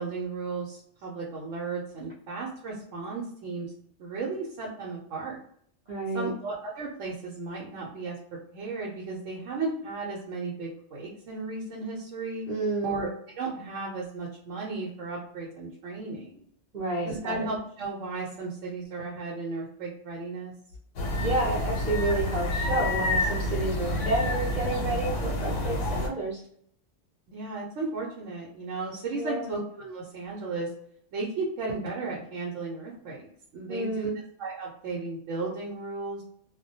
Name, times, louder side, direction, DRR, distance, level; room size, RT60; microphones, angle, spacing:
voice 1, 0.0-3.7 4.0-5.4 6.1-8.2 8.5-12.5 12.8-13.1 13.4-16.4 17.0-20.5 24.0-24.1 24.5-24.6 27.3-30.7 31.1-34.1 34.4-36.2, right 3 dB, 85° right, -3 dB, 1.0 m, -35 dB
voice 2, 5.9-6.3 12.5-12.9 16.7-17.5 21.2-26.4 29.1-29.5 33.7-34.2, right 2 dB, 50° right, -4 dB, 0.6 m, -30 dB
sound 1, 21.0-26.1, left 1 dB, 85° left, 1.0 m, -28 dB
2.2 x 2.1 x 2.6 m, 0.65 s
omnidirectional pair, 1.2 m